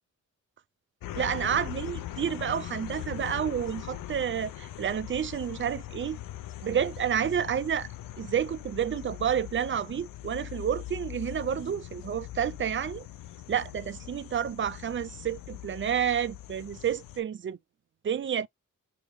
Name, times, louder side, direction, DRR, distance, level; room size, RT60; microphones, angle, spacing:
sound 1, 1.0-17.2, left 14 dB, 90° left, 0.5 m, -41 dB
voice 1, 1.1-6.2 6.6-7.9 8.2-13.1 13.5-17.6 18.0-18.5, right 8 dB, 40° right, 0.4 m, -30 dB
2.8 x 2.8 x 3.4 m
cardioid pair, 90°, 33 cm